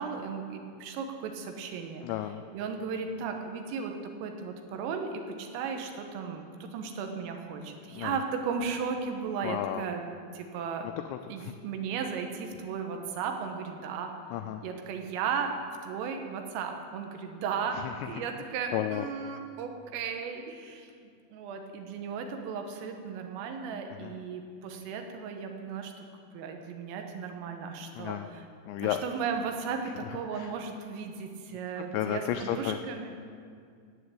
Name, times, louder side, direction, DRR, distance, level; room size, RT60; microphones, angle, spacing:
voice 1, 0.0-2.1 2.5-10.0 10.3-10.9 11.3-14.2 14.6-15.6 15.8-26.1 26.3-28.5 28.8-33.2, right 6 dB, 85° right, 4 dB, 3.9 m, -35 dB
voice 2, 2.0-2.4 7.9-8.1 9.4-9.8 11.1-11.5 14.3-14.6 18.0-18.1 18.7-19.0 24.0-24.1 28.0-28.3 28.7-29.0 30.3-30.5 31.8-32.8, left 12 dB, 85° left, 7 dB, 2.6 m, -32 dB
17.0 x 8.0 x 8.4 m, 2.2 s
omnidirectional pair, 5.8 m